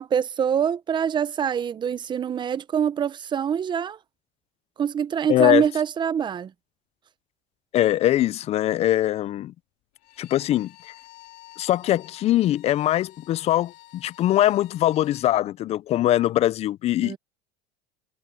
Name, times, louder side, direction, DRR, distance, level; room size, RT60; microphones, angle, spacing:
voice 1, 0.0-4.0 4.8-6.5 17.0-17.2, right 8 dB, 30° right, 0.8 m, -25 dB
voice 2, 5.3-5.6 7.7-9.5 10.2-10.7 11.6-17.2, left 13 dB, 40° left, 0.5 m, -22 dB
Bowed string instrument, 10.0-15.3, left 19 dB, 65° left, 4.1 m, -50 dB
supercardioid pair, 120°, 16 cm